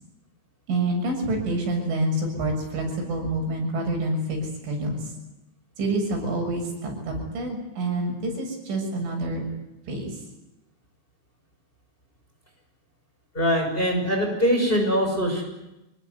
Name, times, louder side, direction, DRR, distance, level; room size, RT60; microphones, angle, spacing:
voice 1, 0.7-5.0 5.8-9.4 9.9-10.1, right 2 dB, 85° right, 2 dB, 9.4 m, -27 dB
voice 2, 13.3-15.4, equal, 10° left, 2 dB, 6.2 m, -22 dB
25.0 x 21.0 x 9.7 m, 0.97 s
omnidirectional pair, 5.4 m